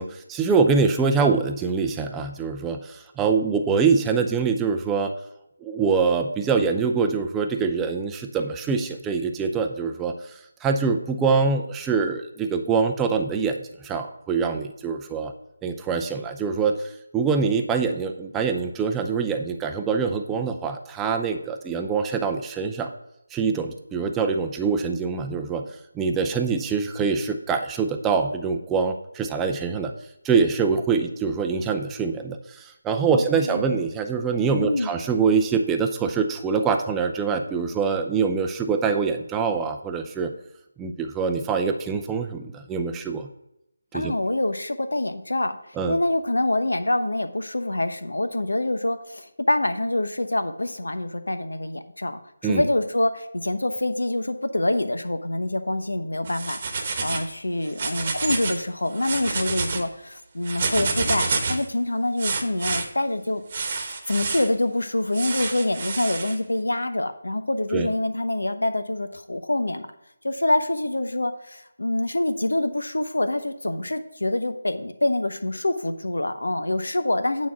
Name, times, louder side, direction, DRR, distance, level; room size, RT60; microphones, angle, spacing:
voice 1, 0.0-5.1 5.6-15.3 15.6-22.9 23.3-25.6 25.9-29.9 30.2-40.3 40.8-43.3 43.9-44.1 45.8-46.0 52.4-52.6 67.7-67.9, right 5 dB, 10° right, 5 dB, 0.5 m, -24 dB
voice 2, 33.1-33.7 34.6-34.9 43.9-63.6 64.1-69.9 70.2-77.5, left 1 dB, 80° left, 9 dB, 0.9 m, -26 dB
sound 1, 56.2-57.3 57.6-58.6 58.9-59.8 60.4-61.7 62.2-62.8 63.5-64.5 65.1-66.3, right 4 dB, 35° right, 1.1 m, -28 dB
9.2 x 4.2 x 6.0 m, 0.84 s
figure-of-eight pair, 160°, 0 cm